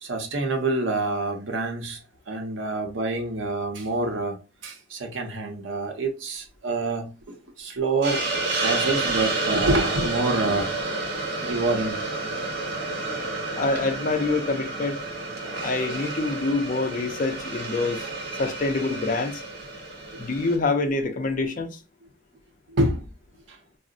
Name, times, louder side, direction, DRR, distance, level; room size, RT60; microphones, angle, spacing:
voice 1, 0.0-4.4 4.6-8.3 8.6-10.7 11.4-12.0 15.4-15.7 18.0-18.2 22.7-23.1 23.5-23.6, right 2 dB, 85° right, 0.8 m, -27 dB
Hiss, 8.0-20.6, right 3 dB, 55° right, 0.9 m, -30 dB
voice 2, 13.5-15.0 15.6-18.0 18.4-19.4 20.2-21.8, left 3 dB, 45° left, 0.4 m, -26 dB
3.7 x 2.0 x 2.5 m
head